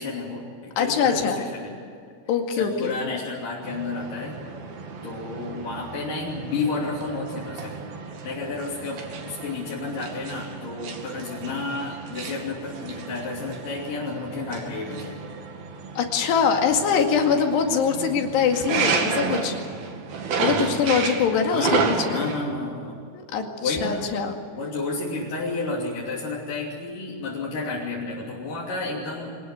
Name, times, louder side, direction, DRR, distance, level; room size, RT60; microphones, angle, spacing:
voice 1, 0.0-1.7 2.5-4.4 5.0-7.8 8.2-15.2 21.5-23.0 23.6-24.1 24.6-29.4, left 3 dB, 55° left, -5 dB, 4.4 m, -31 dB
voice 2, 0.8-1.5 2.3-2.9 16.0-19.6 20.4-22.2 23.1-24.3, left 6 dB, 80° left, 4 dB, 4.3 m, -23 dB
sound 1, 3.6-22.5, right 5 dB, 65° right, 3.9 m, -32 dB
25.0 x 19.5 x 8.3 m, 2.4 s
omnidirectional pair, 4.7 m